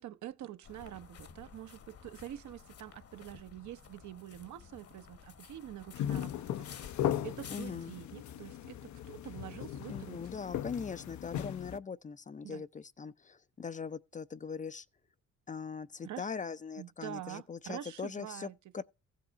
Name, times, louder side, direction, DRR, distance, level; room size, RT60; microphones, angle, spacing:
voice 1, 0.0-6.9 7.2-10.2 12.4-12.6 16.0-16.3 16.8-18.8, right 12 dB, 70° right, 0.8 m, -46 dB
sound 1, 0.6-8.0, left 7 dB, 50° left, 1.1 m, -53 dB
sound 2, 5.9-11.8, left 11 dB, 70° left, 0.6 m, -38 dB
voice 2, 7.5-7.9 9.9-14.9 15.5-18.5 18.7-18.8, left 5 dB, 25° left, 0.4 m, -41 dB
15.5 x 5.5 x 4.0 m
cardioid pair, 90°, 30 cm